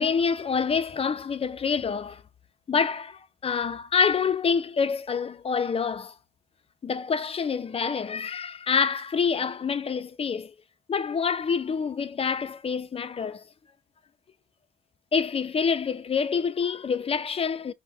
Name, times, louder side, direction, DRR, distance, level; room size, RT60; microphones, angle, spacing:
voice 1, 0.0-2.2 2.7-6.1 6.8-10.5 10.9-13.4 15.1-17.7, left 6 dB, 30° left, 0.4 m, -27 dB
5.4 x 2.1 x 2.7 m
cardioid pair, 90°, 20 cm